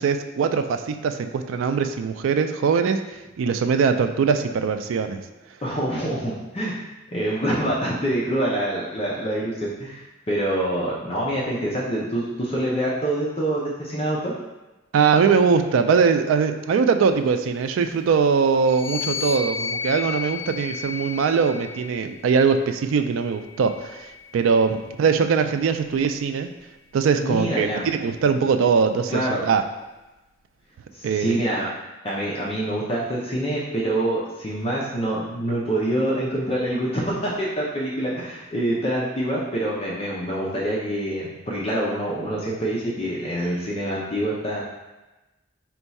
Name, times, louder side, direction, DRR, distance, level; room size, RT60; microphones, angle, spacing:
voice 1, 0.0-3.0 3.4-5.2 14.9-26.5 26.9-27.7 28.0-29.6 31.0-31.4, right 5 dB, 90° right, 8 dB, 0.3 m, -21 dB
voice 2, 5.6-6.8 7.1-14.3 27.2-27.9 29.1-29.4 30.9-31.7 32.0-44.6, right 1 dB, 30° left, -5 dB, 0.6 m, -26 dB
sound 1, 18.6-22.2 23.0-24.6, left 6 dB, 90° left, 0.4 m, -33 dB
4.4 x 2.3 x 4.1 m, 1.1 s
head